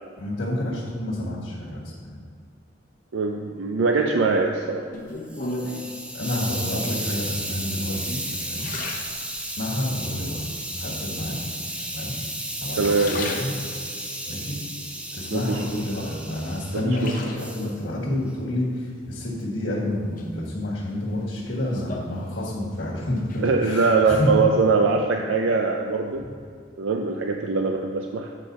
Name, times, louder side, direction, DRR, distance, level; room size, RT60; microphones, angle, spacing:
voice 1, 0.2-2.2 6.1-8.7 9.4-10.5 10.8-11.4 11.9-12.2 12.6-13.5 14.3-14.6 15.1-24.3 26.2-26.3, left 1 dB, 75° left, -7 dB, 1.6 m, -29 dB
voice 2, 3.1-4.8 12.8-13.4 15.3-15.6 16.7-17.2 23.4-26.2 26.8-28.3, right 4 dB, 85° right, 3 dB, 0.5 m, -22 dB
sound 1, 4.9-6.0 6.8-7.3 7.8-9.8 10.3-10.9 11.7-12.4 12.7-14.0 14.5-15.7 16.1-17.8 19.1-19.7 20.2-22.8 23.0-23.5, left 2 dB, 45° left, 0.8 m, -37 dB
Hiss, 5.1-16.8 17.4-17.7, right 1 dB, 5° right, 0.4 m, -33 dB
8.2 x 5.8 x 4.0 m, 2.2 s
head